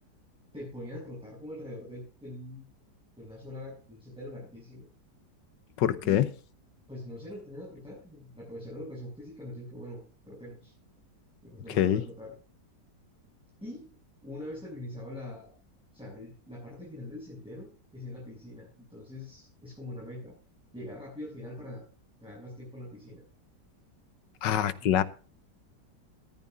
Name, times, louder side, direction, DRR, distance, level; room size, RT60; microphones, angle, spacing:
voice 1, 0.5-2.7 3.2-4.9 6.0-6.2 6.9-10.7 11.4-12.3 13.6-13.9 14.2-15.5 15.9-20.4 20.7-21.8 22.2-23.2 24.8-25.1, left 1 dB, 5° right, -6 dB, 7.6 m, -43 dB
voice 2, 5.8-6.3 11.8-12.0 24.4-25.0, left 10 dB, 85° left, 14 dB, 1.6 m, -24 dB
14.5 x 14.0 x 2.7 m, 0.37 s
omnidirectional pair, 1.9 m